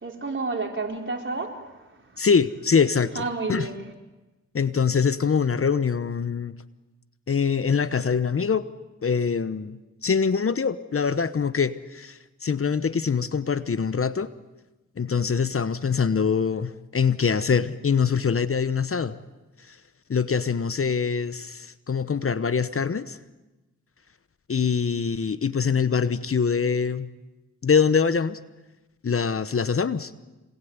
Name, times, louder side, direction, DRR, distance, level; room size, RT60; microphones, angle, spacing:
voice 1, 0.0-1.6 3.1-3.7, right 3 dB, 40° right, 4.4 m, -30 dB
voice 2, 2.2-3.7 4.5-6.6 7.3-8.6 9.0-14.3 15.0-19.2 19.7-19.8 20.1-23.2 24.5-27.1 27.6-28.4 29.0-30.1, left 6 dB, 45° left, 1.0 m, -24 dB
26.5 x 21.0 x 9.6 m
cardioid pair, 55°, 31 cm